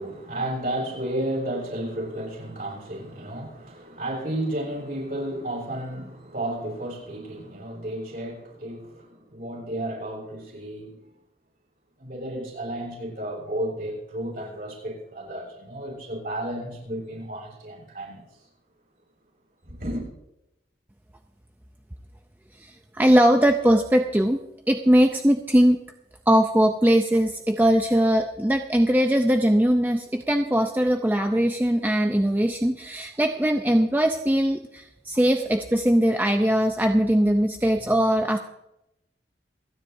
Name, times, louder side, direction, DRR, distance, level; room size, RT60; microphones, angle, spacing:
voice 1, 0.0-11.1 12.0-18.4 19.6-20.1, right 1 dB, 50° right, 6.5 m, -32 dB
voice 2, 22.6-24.4 24.7-25.8 26.3-38.4, equal, 10° right, 0.5 m, -21 dB
28.0 x 10.5 x 2.7 m
head